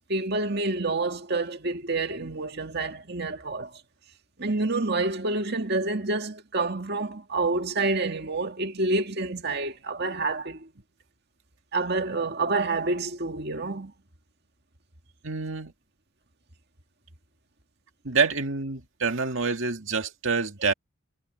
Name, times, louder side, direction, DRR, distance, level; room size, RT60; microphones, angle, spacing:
voice 1, 0.1-3.7 4.4-10.7 11.7-13.9, right 3 dB, 50° right, 2.1 m, -28 dB
voice 2, 15.2-15.7 18.0-20.7, right 4 dB, 65° right, 2.1 m, -27 dB
head